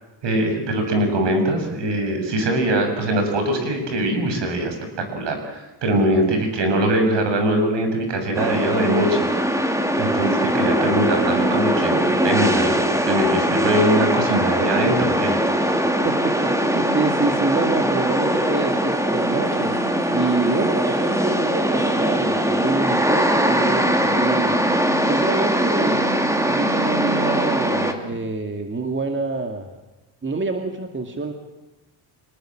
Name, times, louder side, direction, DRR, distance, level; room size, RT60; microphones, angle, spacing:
voice 1, 0.2-9.2 10.0-15.3, right 1 dB, 60° right, 5 dB, 7.4 m, -22 dB
sound 1, 8.3-27.9, right 1 dB, 5° right, 2.8 m, -21 dB
voice 2, 16.0-19.7 20.1-24.6 25.0-26.0 26.5-29.7 30.2-31.3, right 3 dB, 25° right, 5 dB, 2.3 m, -26 dB
25.5 x 19.5 x 7.6 m, 1.1 s
cardioid pair, 95°, 49 cm